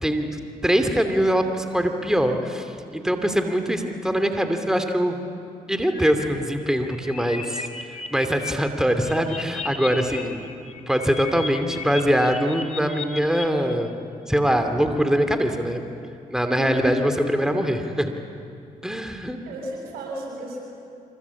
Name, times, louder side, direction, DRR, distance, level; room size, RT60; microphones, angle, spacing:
voice 1, 0.0-5.2 5.7-7.7 8.1-10.4 10.9-14.0 14.3-15.8 16.3-18.1 18.8-19.4, equal, 5° right, 6 dB, 2.7 m, -23 dB
sound 1, 5.8-6.2 6.6-8.5 8.8-10.2 10.5-13.5, left 4 dB, 45° left, 2.9 m, -35 dB
voice 2, 16.4-16.9 19.4-20.6, right 1 dB, 90° right, -1 dB, 7.5 m, -32 dB
26.0 x 23.0 x 8.5 m, 2.5 s
supercardioid pair, 55°, 16 cm